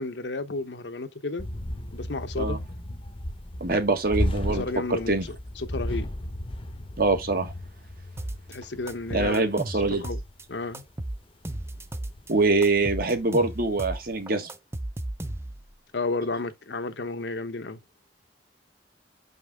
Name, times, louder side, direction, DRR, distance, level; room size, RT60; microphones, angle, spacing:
voice 1, 0.0-1.5 1.9-2.6 4.5-6.1 8.5-9.4 9.7-10.2 10.5-10.8 15.9-17.8, left 3 dB, 75° left, 1.0 m, -32 dB
sound 1, 1.4-11.1 11.5-14.2, left 1 dB, 30° left, 0.8 m, -35 dB
voice 2, 3.6-4.6 4.9-5.3 7.0-7.5 9.1-10.0 12.3-14.5, right 3 dB, 55° right, 1.6 m, -24 dB
sound 2, 8.2-8.6 8.9-10.4 10.7-12.3 12.6-15.7, right 1 dB, 15° right, 0.6 m, -35 dB
6.0 x 5.4 x 3.5 m
head